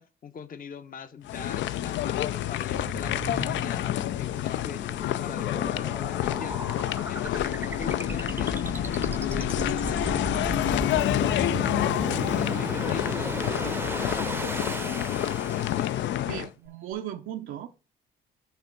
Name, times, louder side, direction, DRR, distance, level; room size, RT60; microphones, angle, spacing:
voice 1, 0.0-6.7 7.1-16.4, left 6 dB, 45° left, 0.9 m, -42 dB
sound 1, 1.3-16.5, left 13 dB, 70° left, 0.4 m, -28 dB
sound 2, 2.8-16.2, right 2 dB, 10° right, 0.6 m, -36 dB
voice 2, 16.2-17.7, right 11 dB, 80° right, 0.6 m, -36 dB
8.2 x 3.4 x 5.2 m
cardioid pair, 90°, 20 cm